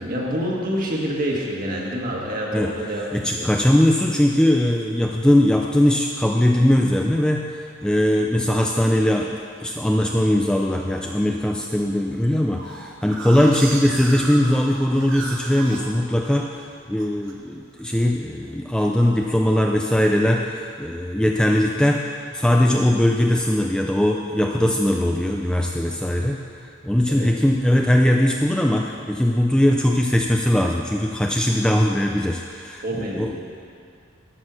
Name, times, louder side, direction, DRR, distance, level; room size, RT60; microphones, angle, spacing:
voice 1, 0.0-3.5 27.1-27.3 32.8-33.3, equal, 45° right, -2 dB, 1.7 m, -27 dB
voice 2, 3.1-26.5 26.8-33.3, left 1 dB, 5° left, 1 dB, 0.4 m, -20 dB
sound 1, 9.0-9.7 10.2-10.6 11.0-11.1 11.4-11.5 11.8-16.6 16.9-17.4 17.7-18.0 18.3-19.3 19.8-20.2, right 3 dB, 65° right, 1.2 m, -36 dB
11.5 x 6.4 x 6.2 m, 2.2 s
head